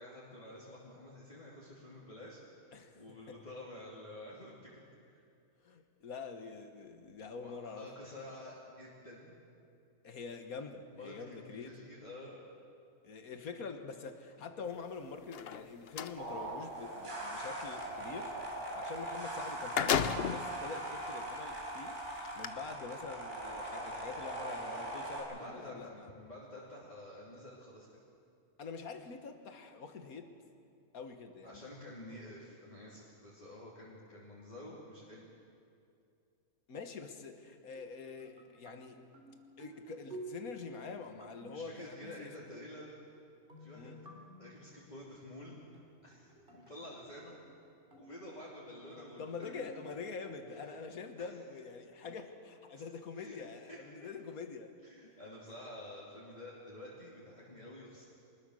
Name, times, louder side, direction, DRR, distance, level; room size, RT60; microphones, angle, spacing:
voice 1, 0.0-2.4 2.9-5.2 7.4-9.3 10.9-12.4 25.3-27.9 31.4-35.3 41.5-43.0 43.6-44.0 44.4-45.7 46.0-47.4 48.0-49.6 50.5-50.7 51.2-51.3 53.2-53.4 53.7-53.8 54.8-58.0, left 1 dB, 30° left, -6 dB, 3.0 m, -50 dB
voice 2, 2.7-3.4 5.6-8.1 10.0-11.8 13.0-18.3 18.7-22.0 22.4-26.1 28.6-30.3 30.9-31.7 36.7-39.0 39.6-42.5 43.7-44.0 49.2-54.7, left 5 dB, 75° left, 7 dB, 1.9 m, -45 dB
sound 1, 15.2-16.2 19.0-19.1 19.4-20.5 21.2-21.3 22.2-22.5, left 8 dB, 55° left, 0.8 m, -33 dB
sound 2, 16.2-25.2, right 1 dB, 50° right, 5.2 m, -41 dB
sound 3, 37.7-42.6 43.5-44.7 45.7-48.5 48.9-50.8, right 1 dB, 35° right, 3.2 m, -53 dB
24.5 x 20.5 x 6.5 m, 2.5 s
omnidirectional pair, 1.5 m